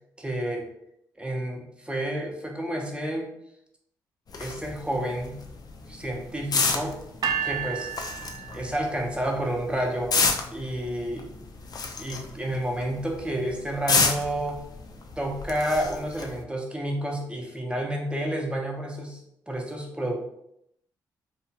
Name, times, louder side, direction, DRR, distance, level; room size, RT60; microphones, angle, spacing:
voice 1, 0.2-0.7 1.2-3.3 4.3-5.4 5.9-7.0 7.4-7.9 8.5-10.1 10.5-11.3 12.0-14.6 15.2-19.2 19.5-20.2, right 1 dB, 10° right, 0 dB, 0.7 m, -30 dB
sound 1, 4.3-16.4, left 4 dB, 45° left, 0.4 m, -31 dB
sound 2, 7.2-9.3, right 7 dB, 50° right, 0.4 m, -32 dB
2.7 x 2.3 x 2.8 m, 0.77 s
supercardioid pair, 55°, 9 cm